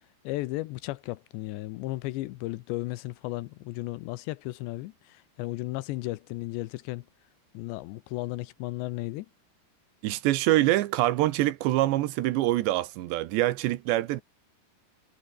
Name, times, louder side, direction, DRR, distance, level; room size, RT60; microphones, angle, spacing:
voice 1, 0.2-7.1 7.5-9.3, left 19 dB, 80° left, 2.9 m, -34 dB
voice 2, 10.0-14.2, right 16 dB, 75° right, 3.1 m, -25 dB
omnidirectional pair, 5.3 m